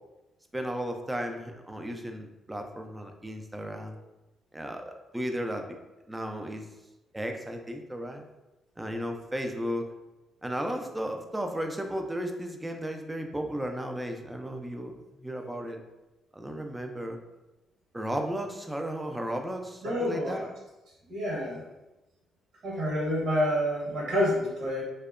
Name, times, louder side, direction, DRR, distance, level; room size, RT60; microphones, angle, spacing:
voice 1, 0.5-4.0 4.5-5.7 6.1-6.6 7.1-8.2 8.8-9.9 10.4-14.9 15.2-15.8 16.3-17.2 17.9-20.4, equal, 10° right, 4 dB, 0.3 m, -34 dB
voice 2, 19.8-20.5 21.1-21.6 22.6-24.8, equal, 70° right, -5 dB, 0.9 m, -28 dB
2.7 x 2.1 x 2.3 m, 1.0 s
cardioid pair, 90°, 0 cm